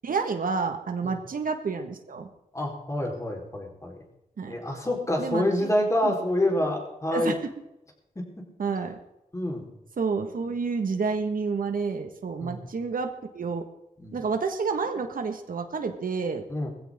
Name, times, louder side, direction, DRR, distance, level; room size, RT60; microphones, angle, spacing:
voice 1, 0.0-2.3 4.4-4.6 5.2-5.7 6.0-6.1 7.1-7.4 8.6-9.0 10.0-13.7 14.1-16.4, right 5 dB, 70° right, 6 dB, 1.5 m, -29 dB
voice 2, 2.5-3.9 4.5-7.3 8.2-8.8 9.3-9.7 12.4-12.7 14.0-14.2 16.5-16.7, left 1 dB, 20° left, 0 dB, 4.0 m, -27 dB
19.5 x 15.5 x 3.7 m, 0.89 s
wide cardioid pair, 115°, 15 cm